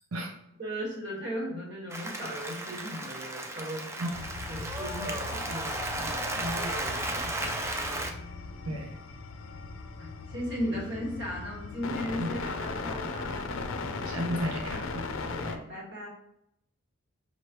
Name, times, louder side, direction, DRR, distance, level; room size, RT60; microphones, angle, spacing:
voice 1, 0.6-3.9 4.5-7.7 10.0-13.6 15.2-16.1, equal, 55° right, -3 dB, 1.7 m, -37 dB
Applause, 1.9-8.1, right 1 dB, 10° right, 0.4 m, -34 dB
voice 2, 4.0-4.3 5.9-6.0 8.7-8.9 12.2-12.3 14.0-15.0, right 1 dB, 75° right, 2 dB, 0.7 m, -33 dB
sound 1, 4.1-15.6, left 3 dB, 60° left, 0.5 m, -38 dB
5.2 x 3.2 x 3.0 m, 0.77 s
head